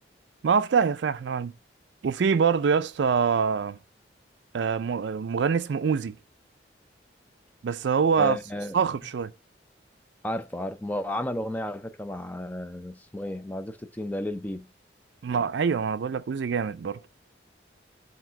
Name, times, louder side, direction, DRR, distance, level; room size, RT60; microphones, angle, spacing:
voice 1, 0.4-1.5 2.0-3.8 4.5-6.2 7.6-8.4 8.7-9.3 15.2-17.0, right 6 dB, 70° right, 0.4 m, -25 dB
voice 2, 8.2-8.8 10.2-14.7, left 1 dB, 10° left, 0.4 m, -33 dB
5.9 x 2.9 x 5.6 m
head